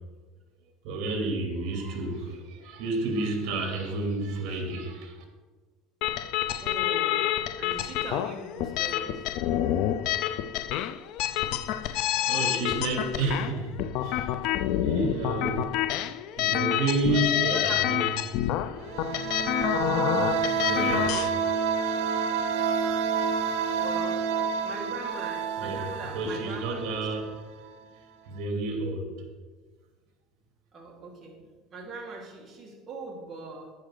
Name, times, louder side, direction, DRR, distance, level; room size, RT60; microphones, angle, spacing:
voice 1, 0.8-5.1 12.2-14.3 14.8-15.7 16.4-18.0 20.6-21.4 25.6-25.8 26.1-27.3 28.3-29.1, right 3 dB, 60° right, 2 dB, 2.7 m, -30 dB
sound 1, 6.0-21.3, left 12 dB, 60° left, 0.5 m, -28 dB
voice 2, 6.6-7.2 7.6-9.2 17.1-17.8 23.8-24.3 24.6-27.1 30.7-31.4 31.7-33.7, right 3 dB, 25° right, -2 dB, 2.0 m, -41 dB
sound 2, 18.8-27.4, right 6 dB, 90° right, 0.8 m, -29 dB
11.0 x 10.0 x 3.9 m, 1.4 s
cardioid pair, 150°, 0 cm